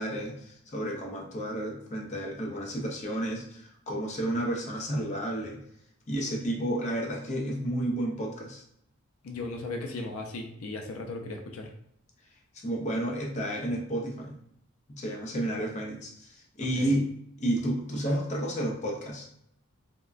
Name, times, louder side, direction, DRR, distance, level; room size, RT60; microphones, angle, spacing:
voice 1, 0.0-5.6 6.1-8.6 12.6-14.4 15.0-17.1 17.4-19.3, right 1 dB, 35° left, -1 dB, 0.6 m, -31 dB
voice 2, 9.2-11.7 16.6-17.0, left 2 dB, 80° left, 3 dB, 0.5 m, -37 dB
3.5 x 2.1 x 2.4 m, 0.74 s
head